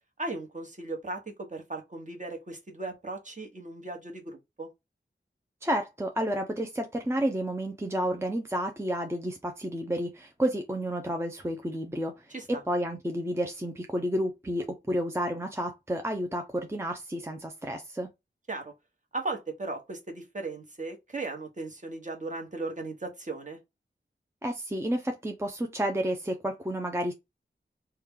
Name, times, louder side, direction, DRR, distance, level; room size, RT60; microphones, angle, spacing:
voice 1, 0.2-4.7 12.3-12.6 18.5-18.7 19.1-23.6, right 2 dB, 40° right, 1.1 m, -37 dB
voice 2, 5.6-18.1 24.4-27.1, equal, 15° right, 0.5 m, -31 dB
3.1 x 2.2 x 3.6 m
wide cardioid pair, 50°, 19 cm